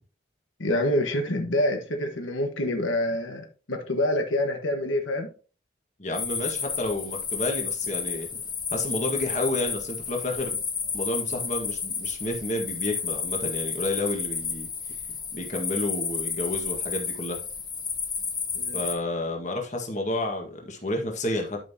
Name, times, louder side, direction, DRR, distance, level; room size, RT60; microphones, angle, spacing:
voice 1, 0.6-5.3 18.5-18.8, left 1 dB, 80° left, 4 dB, 1.4 m, -26 dB
voice 2, 6.0-8.3 8.7-10.6 10.9-14.7 15.3-17.4 18.7-21.6, left 2 dB, 35° left, 2 dB, 1.6 m, -30 dB
sound 1, 6.1-18.9, left 5 dB, 20° left, 1.1 m, -31 dB
12.0 x 5.6 x 2.9 m, 0.37 s
head